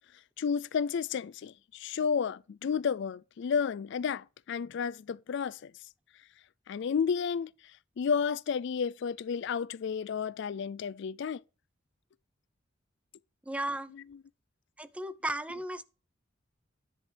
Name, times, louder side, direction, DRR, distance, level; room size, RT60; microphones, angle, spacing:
voice 1, 0.4-5.7 6.7-7.5 8.0-11.4, left 6 dB, 60° left, 0.4 m, -31 dB
voice 2, 13.4-13.9 14.8-15.9, right 1 dB, 5° right, 0.4 m, -35 dB
10.5 x 7.9 x 3.3 m
head